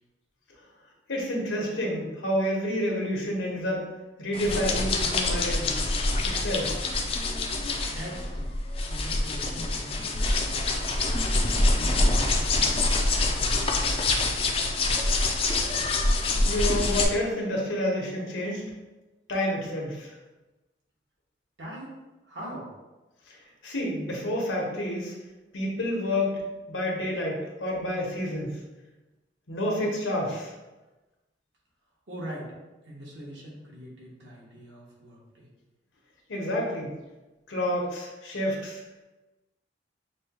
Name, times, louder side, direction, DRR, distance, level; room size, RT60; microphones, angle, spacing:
voice 1, 1.1-3.9 4.2-5.8 6.2-6.9 16.4-18.7 19.3-20.1 23.3-23.4 23.6-25.1 25.5-26.3 26.7-28.6 29.5-30.5 36.3-36.9 37.5-38.8, left 1 dB, 90° left, -2 dB, 1.1 m, -29 dB
sound 1, 4.3-17.0, left 2 dB, 30° left, 0.4 m, -25 dB
voice 2, 7.9-8.5 8.9-12.8 13.2-15.2 21.6-21.9 22.2-22.7 32.1-32.5 32.8-35.5, equal, 65° right, -4 dB, 1.3 m, -42 dB
6.0 x 2.3 x 2.9 m, 1.1 s
head